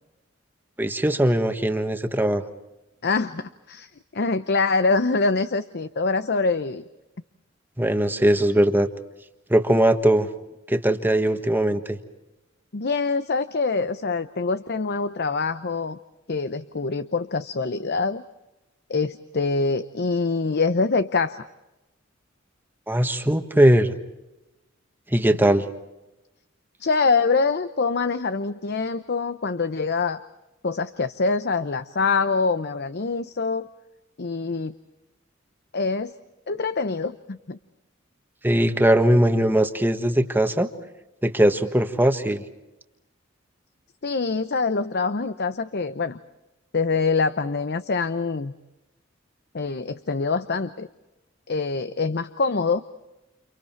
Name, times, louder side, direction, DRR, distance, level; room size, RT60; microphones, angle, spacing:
voice 1, 0.8-2.4 7.8-8.9 9.5-10.3 10.7-12.0 22.9-23.9 25.1-25.7 38.4-40.7 41.2-42.4, right 1 dB, 10° right, 7 dB, 1.5 m, -20 dB
voice 2, 3.0-6.8 12.7-16.0 16.3-18.2 18.9-21.4 26.8-30.2 30.6-33.7 34.2-34.7 35.7-36.1 36.5-37.6 44.0-46.2 46.7-48.5 49.5-50.9 51.5-52.8, left 4 dB, 55° left, 12 dB, 0.8 m, -25 dB
30.0 x 29.5 x 4.5 m, 0.98 s
head